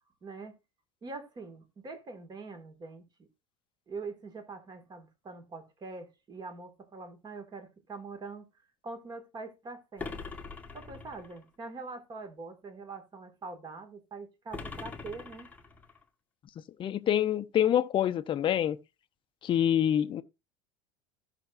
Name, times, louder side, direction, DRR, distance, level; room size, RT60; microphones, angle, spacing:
voice 1, 0.2-0.5 1.0-3.1 3.9-8.5 8.8-10.2 10.7-15.5, right 3 dB, 30° right, 2.0 m, -43 dB
sound 1, 10.0-11.4 14.5-16.0, left 4 dB, 10° left, 1.2 m, -42 dB
voice 2, 16.8-18.8 19.4-20.2, left 10 dB, 35° left, 0.7 m, -26 dB
16.0 x 5.8 x 2.5 m
supercardioid pair, 105°, 15 cm